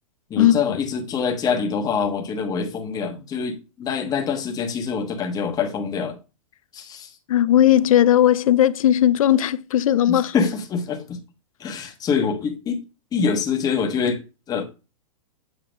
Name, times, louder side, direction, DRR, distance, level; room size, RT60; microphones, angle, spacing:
voice 1, 0.3-6.2 6.7-7.1 10.1-11.2 11.6-12.8 13.1-14.6, left 6 dB, 20° left, 1.2 m, -25 dB
voice 2, 7.3-10.3, left 11 dB, 80° left, 0.5 m, -17 dB
8.1 x 3.0 x 5.2 m
hypercardioid pair, 140°, 18 cm